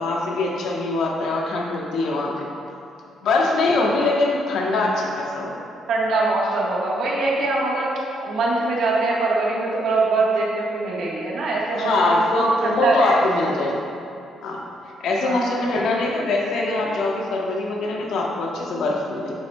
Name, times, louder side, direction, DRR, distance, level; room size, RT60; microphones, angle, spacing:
voice 1, 0.0-2.5 3.2-5.5 11.7-13.8 14.4-14.6 15.0-19.3, left 2 dB, 75° left, -2 dB, 1.0 m, -23 dB
voice 2, 5.9-7.9 8.2-13.2 15.2-15.8, right 2 dB, 75° right, -4 dB, 1.3 m, -23 dB
7.8 x 5.7 x 2.2 m, 2.7 s
cardioid pair, 90°, 0 cm